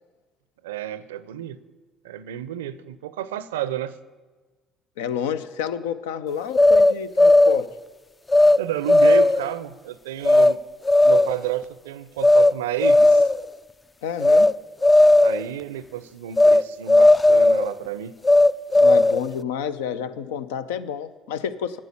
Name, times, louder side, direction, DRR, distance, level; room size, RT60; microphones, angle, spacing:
voice 1, 0.6-1.6 2.0-4.0 8.6-10.6 11.0-13.3 15.2-18.1, right 11 dB, 90° right, 16 dB, 0.4 m, -31 dB
voice 2, 5.0-7.7 14.0-14.5 18.8-21.8, left 8 dB, 85° left, 13 dB, 0.5 m, -29 dB
sound 1, 6.5-7.7 8.3-8.6 8.9-9.5 10.3-10.5 10.9-11.4 12.2-12.5 12.8-13.5 14.2-14.5 14.8-15.4 16.4-16.6 16.9-17.7 18.2-19.3, left 2 dB, 25° left, 0.3 m, -15 dB
9.8 x 7.4 x 8.4 m, 1.3 s
hypercardioid pair, 60°, 0 cm